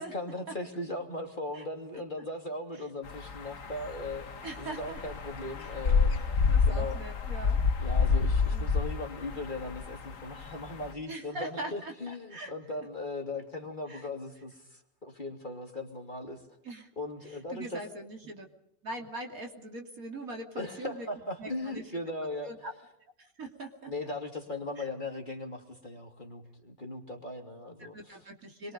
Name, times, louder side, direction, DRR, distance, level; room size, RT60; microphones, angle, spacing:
voice 1, 0.0-4.2 4.6-6.2 6.6-7.0 7.8-16.4 17.0-17.8 20.5-22.5 23.9-28.2, left 2 dB, 25° left, 2 dB, 2.9 m, -38 dB
sound 1, 3.1-10.9, left 5 dB, 50° left, 1.8 m, -29 dB
voice 2, 4.4-5.0 5.6-5.7 6.5-7.6 8.1-8.7 11.1-12.5 13.9-14.1 16.6-16.9 17.5-18.5 18.8-21.1 21.4-21.8 22.4-22.7 23.2-23.9 24.8-24.9 27.9-28.7, right 1 dB, 55° right, 2 dB, 3.2 m, -41 dB
26.5 x 23.0 x 5.3 m, 0.77 s
omnidirectional pair, 1.8 m